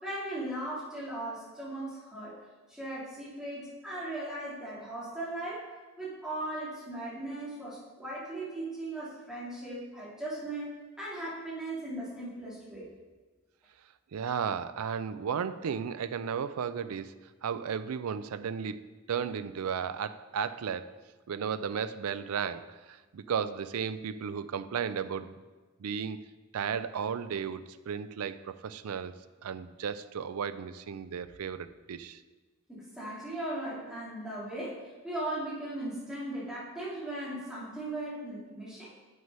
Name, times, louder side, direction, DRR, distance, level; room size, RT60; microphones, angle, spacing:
voice 1, 0.0-5.7 6.0-12.9 32.7-38.9, right 1 dB, 5° right, -9 dB, 2.6 m, -38 dB
voice 2, 14.1-17.1 17.4-18.8 19.1-21.0 21.3-25.4 25.8-26.2 26.5-29.1 29.4-32.2, right 7 dB, 85° right, 13 dB, 0.4 m, -34 dB
7.3 x 6.3 x 5.5 m, 1.3 s
head